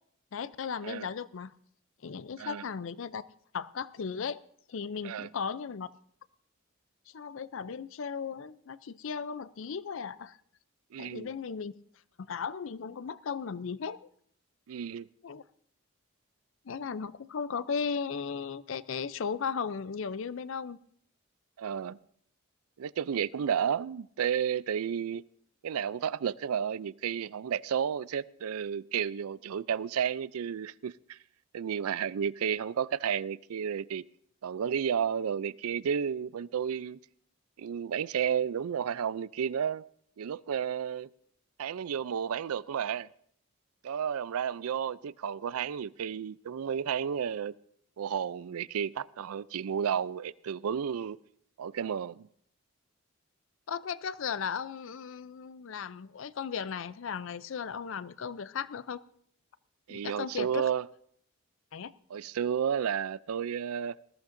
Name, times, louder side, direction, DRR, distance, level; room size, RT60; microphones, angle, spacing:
voice 1, 0.3-1.5 2.0-3.2 3.5-4.4 4.7-5.9 7.1-10.4 11.0-11.7 12.2-14.1 15.2-15.4 16.7-20.8 53.7-59.0 59.9-60.7 61.7-61.9, left 6 dB, 65° left, 0.4 m, -36 dB
voice 2, 10.9-11.3 14.7-15.1 21.6-22.0 22.8-25.2 25.6-31.2 31.5-34.0 34.4-37.0 37.6-39.8 40.2-41.1 41.6-43.1 43.8-47.5 48.0-51.2 51.6-52.3 59.9-60.9 62.1-64.0, right 8 dB, 85° right, 0.4 m, -32 dB
20.0 x 14.0 x 2.6 m
head